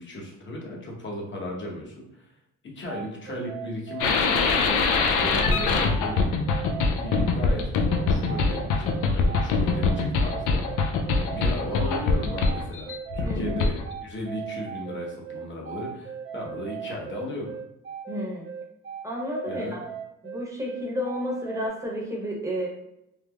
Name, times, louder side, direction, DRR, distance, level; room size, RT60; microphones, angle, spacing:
voice 1, 0.0-2.3 2.6-4.6 5.1-6.3 7.0-10.8 11.2-13.7 14.0-17.5 19.4-19.8, left 1 dB, 40° left, -2 dB, 0.9 m, -36 dB
sound 1, 2.9-21.7, right 7 dB, 45° right, 0.6 m, -38 dB
sound 2, 4.0-13.9, left 4 dB, 85° left, 0.5 m, -23 dB
voice 2, 13.2-13.6 18.1-18.5 19.0-19.8 20.2-22.7, equal, 10° right, -3 dB, 0.8 m, -31 dB
3.2 x 2.0 x 2.3 m, 0.81 s
cardioid pair, 90°, 30 cm